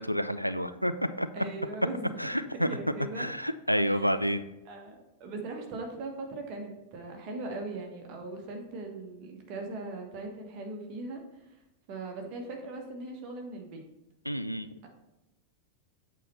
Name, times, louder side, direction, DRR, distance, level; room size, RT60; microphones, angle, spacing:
voice 1, 0.0-1.3 2.2-2.7 3.2-4.4 14.3-14.7, equal, 90° left, 11 dB, 0.3 m, -29 dB
voice 2, 1.3-2.2 2.5-3.3 3.9-4.1 4.6-11.5 11.9-13.8, right 2 dB, 40° right, 2 dB, 1.4 m, -39 dB
8.1 x 4.1 x 4.2 m, 0.97 s
figure-of-eight pair, 90°, 0 cm